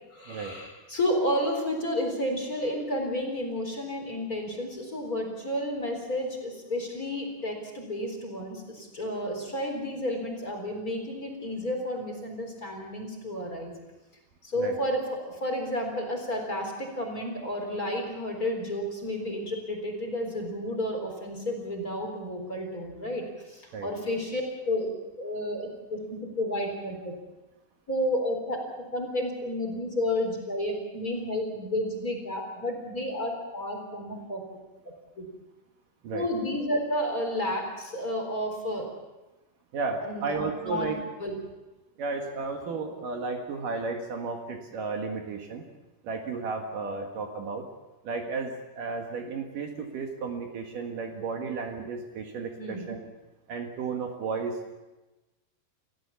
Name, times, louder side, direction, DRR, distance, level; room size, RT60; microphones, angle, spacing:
voice 1, 0.1-13.7 14.4-24.9 25.2-26.0 26.4-27.1 27.9-28.6 28.9-34.4 35.2-35.3 36.1-38.9 40.0-41.3 52.6-52.9, left 1 dB, 20° left, 1 dB, 4.1 m, -31 dB
voice 2, 39.7-41.0 42.0-45.7 46.0-47.7 48.0-53.1 53.5-54.6, right 4 dB, 60° right, 3 dB, 3.1 m, -33 dB
29.0 x 15.5 x 7.2 m, 1.1 s
omnidirectional pair, 4.5 m